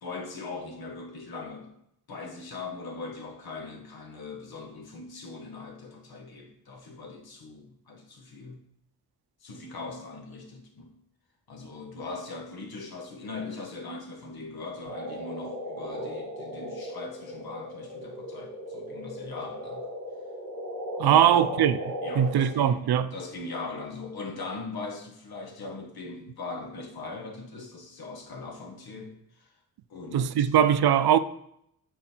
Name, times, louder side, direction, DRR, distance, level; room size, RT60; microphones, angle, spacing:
voice 1, 0.0-1.7 2.1-8.6 9.4-11.0 11.5-19.9 21.0-21.5 22.0-22.9 23.1-29.5 29.9-30.5, left 3 dB, 75° left, 1.7 m, -40 dB
sound 1, 14.8-22.6, equal, 45° right, 3.7 m, -37 dB
voice 2, 21.0-23.1 30.1-31.2, right 9 dB, 90° right, 0.6 m, -21 dB
10.5 x 4.4 x 4.5 m
wide cardioid pair, 175°, 37 cm